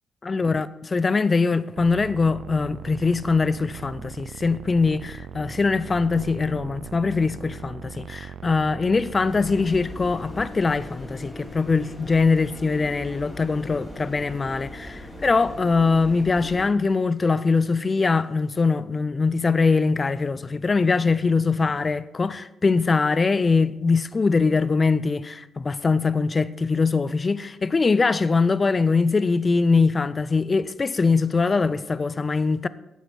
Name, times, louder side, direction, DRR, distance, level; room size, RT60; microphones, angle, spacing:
voice 1, 0.2-32.7, left 4 dB, 35° left, 0.5 m, -22 dB
sound 1, 1.8-9.7, right 8 dB, 70° right, 0.5 m, -39 dB
sound 2, 9.3-16.7, left 1 dB, 10° left, 3.5 m, -39 dB
14.5 x 9.0 x 4.5 m
supercardioid pair, 60°, 0 cm